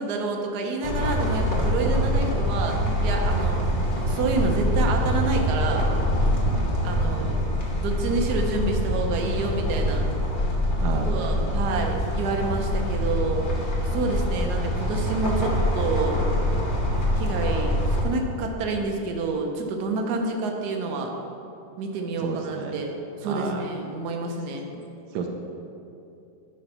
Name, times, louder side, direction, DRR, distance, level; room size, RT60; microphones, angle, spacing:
voice 1, 0.0-3.6 4.0-5.9 6.8-7.4 7.8-10.0 10.9-13.5 13.9-16.2 17.2-21.1 21.8-22.9 23.2-24.7, right 3 dB, 60° right, 2 dB, 1.3 m, -28 dB
sound 1, 0.8-18.0, equal, 30° left, 1.1 m, -24 dB
voice 2, 6.4-6.7 10.8-11.5 22.2-22.8 23.2-23.7 25.1-25.3, right 5 dB, 80° right, 2 dB, 1.4 m, -32 dB
11.0 x 4.0 x 5.6 m, 2.7 s
omnidirectional pair, 2.1 m